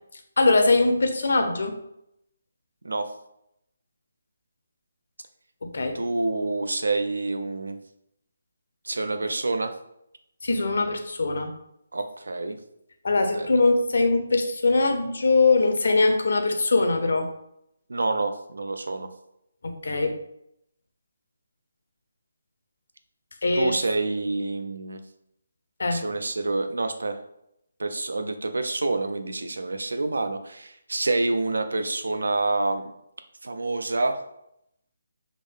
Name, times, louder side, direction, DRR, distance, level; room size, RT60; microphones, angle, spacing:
voice 1, 0.4-1.8 5.6-6.0 10.4-11.5 13.0-17.3 19.6-20.2 23.4-23.8 25.8-26.0, left 3 dB, 70° left, 6 dB, 0.6 m, -22 dB
voice 2, 5.9-7.8 8.8-9.7 11.9-12.6 13.2-13.5 17.9-19.1 23.5-25.0 25.9-27.2 27.8-32.9 33.4-34.2, right 2 dB, 85° right, 8 dB, 0.4 m, -27 dB
3.6 x 2.0 x 3.5 m, 0.77 s
hypercardioid pair, 160°, 0 cm